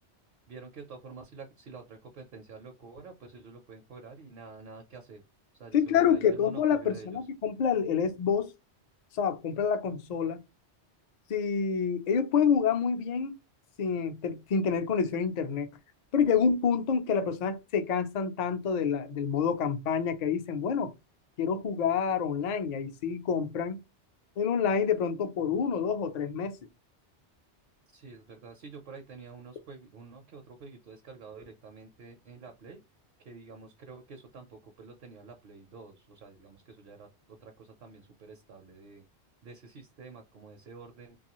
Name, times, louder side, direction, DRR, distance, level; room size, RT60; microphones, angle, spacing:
voice 1, 0.5-5.2 5.6-7.2 27.9-32.8 33.2-39.0 39.4-41.2, right 4 dB, 60° right, 0.7 m, -48 dB
voice 2, 5.7-8.5 9.1-10.4 11.3-13.3 13.8-15.7 16.1-20.9 21.4-23.8 24.4-26.6, left 6 dB, 55° left, 0.4 m, -27 dB
2.6 x 2.3 x 2.9 m
omnidirectional pair, 1.2 m